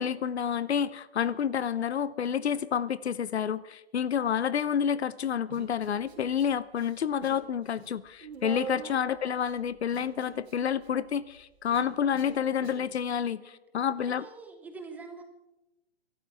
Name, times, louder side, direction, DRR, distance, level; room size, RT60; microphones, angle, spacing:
voice 1, 0.0-14.2, left 8 dB, 85° left, 0.8 m, -29 dB
Human voice, 5.5-6.4 6.7-7.5 7.7-12.9, right 7 dB, 90° right, 3.2 m, -44 dB
voice 2, 8.8-9.2 13.4-15.2, right 4 dB, 5° right, 0.9 m, -47 dB
23.5 x 12.5 x 3.5 m
hypercardioid pair, 160°, 32 cm